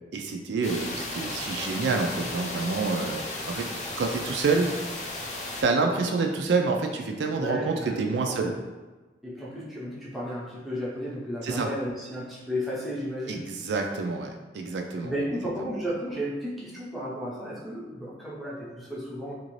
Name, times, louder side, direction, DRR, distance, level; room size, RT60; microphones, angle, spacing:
voice 1, 0.1-3.2 3.5-3.7 4.0-4.7 5.6-8.5 11.4-11.7 13.3-15.1, right 4 dB, 75° right, 3 dB, 0.4 m, -27 dB
sound 1, 0.6-5.6, left 2 dB, 40° left, 0.5 m, -35 dB
voice 2, 7.3-8.0 8.2-8.6 9.2-13.5 15.0-19.3, equal, ahead, -7 dB, 0.6 m, -33 dB
2.9 x 2.5 x 3.1 m, 1.2 s
head